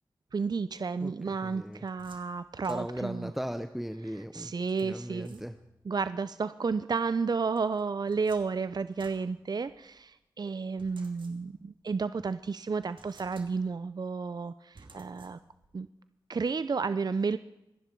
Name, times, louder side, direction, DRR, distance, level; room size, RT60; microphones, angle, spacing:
voice 1, 0.3-3.3 4.3-5.4 5.9-15.4 15.7-15.9 16.3-17.4, right 4 dB, 50° right, 14 dB, 0.5 m, -32 dB
voice 2, 1.0-1.8 2.7-4.5 4.8-5.6, equal, 5° right, 9 dB, 0.8 m, -37 dB
sound 1, 1.3-3.3 4.7-5.9 7.5-10.0 10.8-11.8 12.2-12.3 12.8-13.9 14.7-15.7, right 3 dB, 70° right, 2.8 m, -57 dB
25.5 x 11.0 x 4.6 m, 0.93 s
cardioid pair, 45°, 9 cm